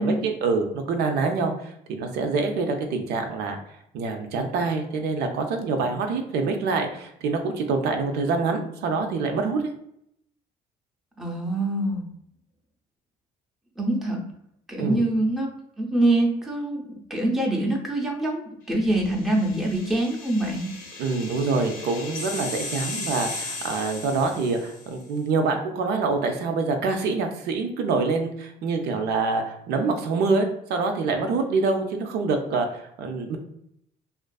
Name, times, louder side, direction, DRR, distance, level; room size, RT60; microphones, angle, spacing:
voice 1, 0.0-3.6 3.9-9.6 14.8-15.1 21.0-33.4, right 4 dB, 75° right, 4 dB, 0.5 m, -26 dB
voice 2, 11.2-12.0 13.8-14.2 14.7-15.5 15.8-20.7, right 1 dB, ahead, -2 dB, 0.6 m, -24 dB
sound 1, 19.0-25.0, left 2 dB, 60° left, 0.7 m, -36 dB
2.5 x 2.4 x 2.2 m, 0.75 s
cardioid pair, 110°, 17 cm